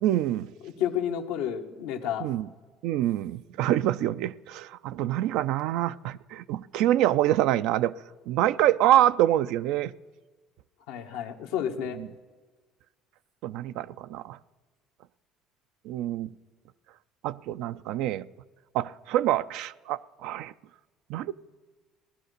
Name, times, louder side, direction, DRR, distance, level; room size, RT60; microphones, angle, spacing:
voice 1, 0.0-0.5 2.2-2.5 2.8-7.9 8.3-9.9 13.4-14.4 15.9-16.3 17.2-18.3 18.7-20.5 21.1-21.3, right 13 dB, 75° right, 0.4 m, -26 dB
voice 2, 0.6-2.3 10.9-12.0, left 9 dB, 85° left, 1.2 m, -31 dB
16.5 x 11.0 x 6.6 m
supercardioid pair, 85°, 0 cm